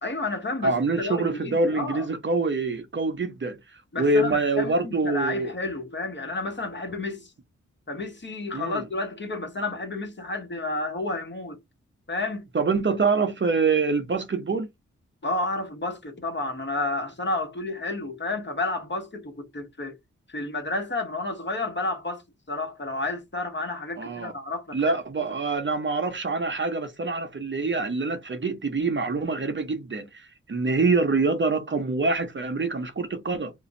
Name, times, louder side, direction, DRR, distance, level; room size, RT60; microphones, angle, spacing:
voice 1, 0.0-2.1 3.9-7.3 7.9-11.6 12.1-12.5 15.2-20.0 20.3-22.2 22.5-24.9, left 2 dB, 40° left, 1.3 m, -31 dB
voice 2, 0.6-3.6 4.0-5.5 8.5-8.8 12.5-14.7 24.0-24.3 24.7-33.5, right 3 dB, 40° right, 0.8 m, -25 dB
2.5 x 2.3 x 4.0 m
cardioid pair, 50°, 29 cm